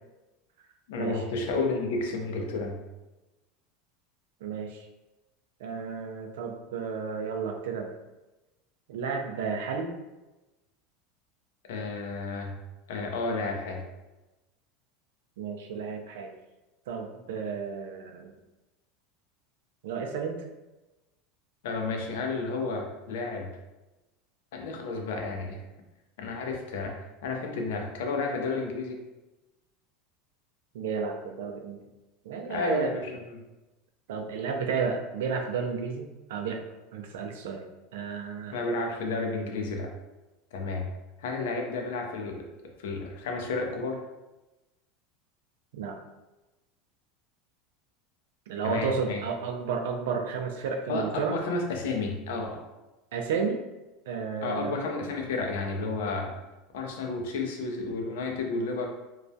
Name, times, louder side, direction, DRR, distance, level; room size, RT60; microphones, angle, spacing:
voice 1, 0.9-2.8 11.7-12.5 12.9-13.8 21.6-23.5 24.5-25.6 26.2-29.0 32.4-33.4 38.5-39.9 40.5-40.9 41.2-42.5 42.8-44.0 48.6-49.2 50.9-52.6 54.4-56.4 56.7-58.9, left 3 dB, 85° left, 2 dB, 0.5 m, -31 dB
voice 2, 4.4-4.9 5.6-8.0 8.9-9.9 15.4-16.3 16.9-18.3 19.8-20.4 30.7-31.8 32.2-33.0 34.1-36.6 36.9-37.7 37.9-38.6 45.7-46.0 48.5-51.4 53.1-53.6 54.1-54.8, right 5 dB, 90° right, 4 dB, 0.3 m, -32 dB
2.3 x 2.1 x 2.6 m, 1.1 s
supercardioid pair, 160°, 0 cm